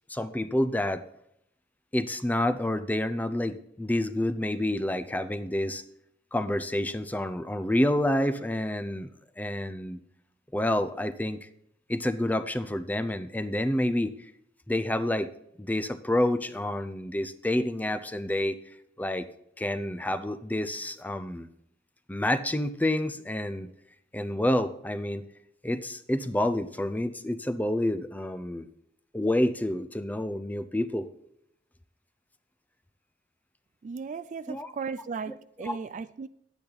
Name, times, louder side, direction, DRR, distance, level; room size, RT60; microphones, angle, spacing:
voice 1, 0.1-1.0 1.9-5.8 6.3-9.1 9.4-10.0 10.5-11.4 11.9-14.1 14.7-15.3 15.6-18.6 19.0-19.3 19.6-21.5 22.1-23.7 24.1-25.3 25.6-28.7 29.1-31.1 34.5-34.7 35.3-35.4 35.6-35.8, left 1 dB, 10° left, 0.5 m, -28 dB
voice 2, 33.8-36.3, right 5 dB, 45° right, 0.3 m, -36 dB
10.5 x 9.1 x 4.0 m
head